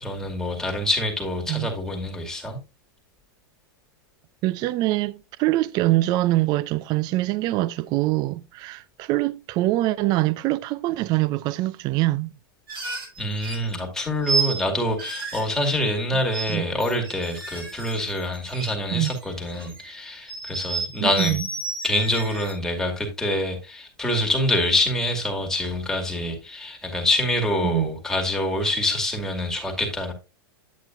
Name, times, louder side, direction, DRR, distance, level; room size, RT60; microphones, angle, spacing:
voice 1, 0.0-2.6 13.2-21.4 21.8-30.1, left 1 dB, 5° left, 2.2 m, -26 dB
voice 2, 4.4-12.3 16.5-16.6 18.9-19.1 21.0-21.4 27.6-27.9, right 17 dB, 35° right, 0.4 m, -24 dB
sound 1, 12.7-13.7 14.2-14.6 15.0-16.0 16.3-16.5 16.8-18.7 19.0-19.9 20.3-22.5, right 4 dB, 90° right, 5.0 m, -31 dB
9.2 x 8.0 x 2.5 m
hypercardioid pair, 130°, 12 cm